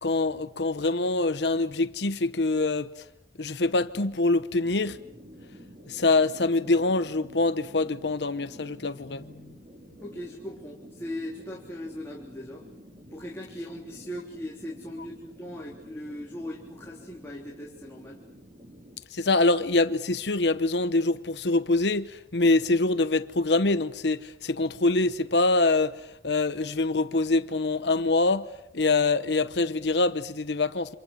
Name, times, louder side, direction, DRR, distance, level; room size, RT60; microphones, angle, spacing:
voice 1, 0.0-3.1 3.4-5.0 5.9-9.3 19.1-28.5 28.7-30.9, left 3 dB, 80° left, 1.0 m, -25 dB
sound 1, 4.6-19.0, equal, 35° right, 5.4 m, -50 dB
voice 2, 10.0-12.6 13.1-18.2, left 1 dB, 15° left, 3.6 m, -39 dB
28.5 x 26.5 x 7.5 m
head